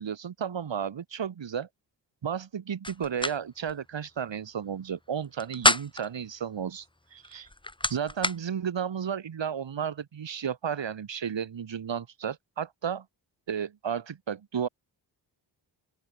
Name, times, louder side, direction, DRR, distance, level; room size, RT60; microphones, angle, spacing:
voice 1, 0.0-1.7 2.2-6.9 7.1-7.5 7.9-13.1 13.5-14.7, right 8 dB, 80° right, 7.0 m, -33 dB
sound 1, 2.8-3.4 3.7-3.8 5.2-6.1 7.2-8.4, left 2 dB, 10° left, 1.6 m, -27 dB
open air
cardioid pair, 65°, 44 cm